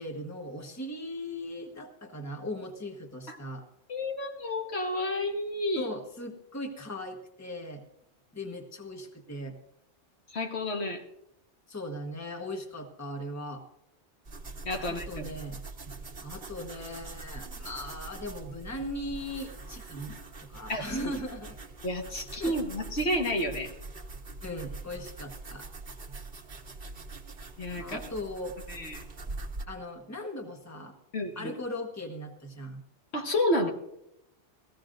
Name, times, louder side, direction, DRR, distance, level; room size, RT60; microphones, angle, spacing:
voice 1, 0.0-3.6 5.8-7.8 8.3-9.5 11.7-13.6 14.8-15.6 16.2-21.6 22.4-22.6 24.4-25.7 27.8-28.6 29.7-30.9 31.3-32.8, left 1 dB, 15° left, 3 dB, 1.3 m, -38 dB
voice 2, 3.9-5.9 10.3-11.0 14.6-15.3 20.7-21.2 21.8-23.7 27.6-28.0 28.7-29.0 31.1-31.5 33.1-33.7, left 1 dB, 60° left, 2 dB, 1.6 m, -30 dB
sound 1, 14.2-29.6, right 3 dB, 40° right, 1.4 m, -43 dB
20.0 x 15.5 x 2.6 m, 0.81 s
omnidirectional pair, 1.2 m